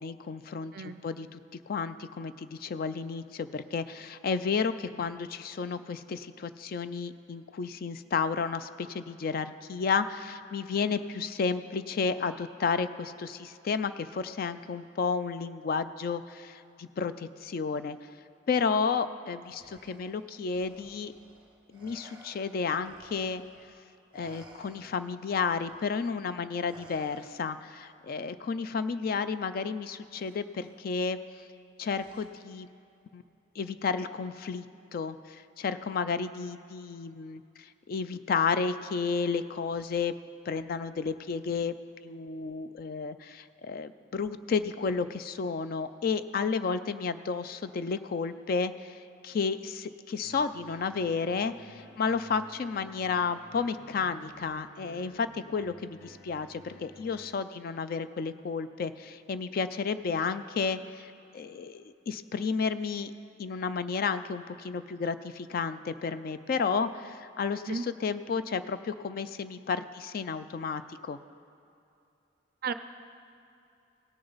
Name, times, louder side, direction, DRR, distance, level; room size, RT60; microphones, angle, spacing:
voice 1, 0.0-1.4 1.7-18.0 18.5-21.1 21.7-23.4 24.1-31.2 31.8-32.7 33.1-33.2 33.6-34.6 34.9-40.1 40.5-41.7 42.0-49.0 49.2-63.1 63.4-71.2, left 5 dB, 45° left, 12 dB, 0.3 m, -32 dB
voice 2, 0.7-1.0 67.5-67.8 72.6-72.7, right 5 dB, 45° right, 11 dB, 0.4 m, -34 dB
Respiratory sounds, 19.4-23.8 24.1-27.8 29.0-29.2 30.2-30.8 32.0-32.6, right 1 dB, 25° right, 1.0 m, -56 dB
sound 1, 50.2-57.4, equal, 65° left, 1.0 m, -53 dB
17.5 x 6.6 x 4.0 m, 2.7 s
head